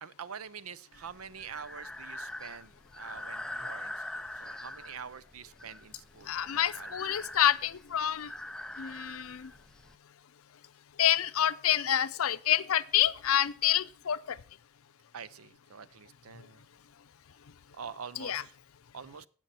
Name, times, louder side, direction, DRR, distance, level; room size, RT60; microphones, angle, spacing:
voice 1, 0.0-7.3 15.1-16.6 17.8-18.5 18.9-19.3, right 6 dB, 85° right, 0.6 m, -46 dB
Breathing, 0.9-10.0, left 1 dB, 5° left, 0.4 m, -43 dB
voice 2, 6.3-8.3 8.8-9.5 11.0-14.4 18.2-18.4, left 11 dB, 80° left, 0.5 m, -28 dB
17.0 x 6.4 x 4.3 m
head